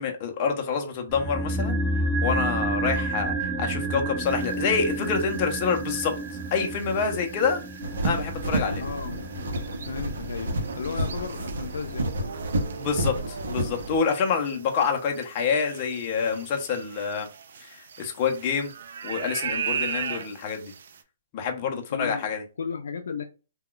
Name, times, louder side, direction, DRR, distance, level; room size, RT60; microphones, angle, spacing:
voice 1, 0.0-1.8 2.2-6.1 6.5-7.6 8.0-8.8 12.8-17.3 17.6-17.7 18.0-18.7 19.0-20.7 21.3-22.4, left 6 dB, 25° left, 0.5 m, -27 dB
sound 1, 1.1-11.3 11.6-11.7, right 2 dB, 15° right, 0.8 m, -30 dB
sound 2, 4.2-21.0, right 6 dB, 55° right, 0.4 m, -39 dB
sound 3, 7.8-14.0, right 1 dB, 70° right, 0.8 m, -30 dB
voice 2, 8.7-9.3 9.8-12.3 21.6-22.3 22.6-23.2, left 5 dB, 75° left, 0.4 m, -35 dB
2.2 x 2.2 x 3.7 m
hypercardioid pair, 170°, 0 cm